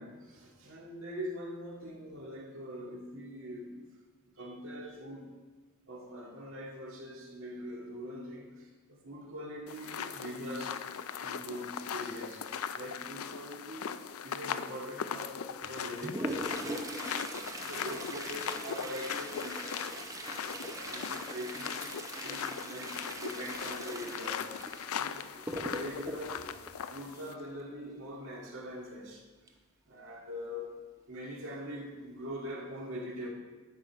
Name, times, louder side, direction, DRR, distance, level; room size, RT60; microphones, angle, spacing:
voice 1, 0.0-3.8 4.4-5.3 5.9-12.5 12.7-21.9 22.2-26.5 26.9-29.2 29.9-30.7 31.1-33.3, equal, 65° right, 2.0 m, -43 dB
sound 1, 9.7-27.3, left 7 dB, 75° left, 0.4 m, -39 dB
Toilet flush, 15.6-27.6 29.5-29.6 29.9-30.0 30.8-30.9 31.5-31.8 32.2-32.4, right 1 dB, 15° right, 0.6 m, -41 dB
10.5 x 7.9 x 4.6 m
head